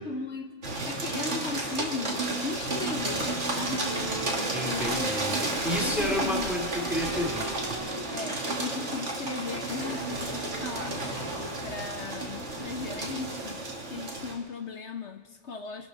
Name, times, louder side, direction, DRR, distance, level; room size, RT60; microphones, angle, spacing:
voice 1, 0.0-5.1 5.8-6.5 8.1-11.0 11.6-13.6 13.9-15.9, left 4 dB, 55° left, 7 dB, 1.0 m, -37 dB
sound 1, 0.6-14.4, right 2 dB, 50° right, 2.2 m, -32 dB
Wind instrument woodwind instrument, 3.3-11.9, right 2 dB, 25° left, 6.1 m, -42 dB
voice 2, 4.5-7.8, left 1 dB, ahead, 0 dB, 2.4 m, -31 dB
24.0 x 12.0 x 4.0 m, 1.4 s
omnidirectional pair, 1.6 m